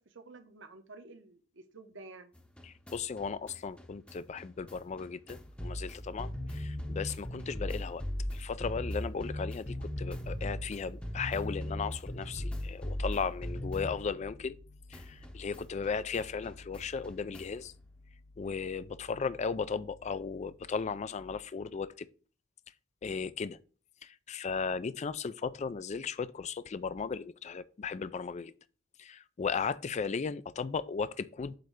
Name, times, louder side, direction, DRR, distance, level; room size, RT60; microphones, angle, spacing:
voice 1, 0.1-2.3, right 3 dB, 60° right, 1.0 m, -51 dB
sound 1, 2.4-14.6 14.9-17.7, equal, 5° left, 0.8 m, -39 dB
voice 2, 2.6-8.0 8.3-14.5 14.9-17.7 18.4-22.1 23.0-23.6 24.0-28.5 29.0-31.6, left 5 dB, 35° left, 0.3 m, -36 dB
7.9 x 3.3 x 6.4 m
head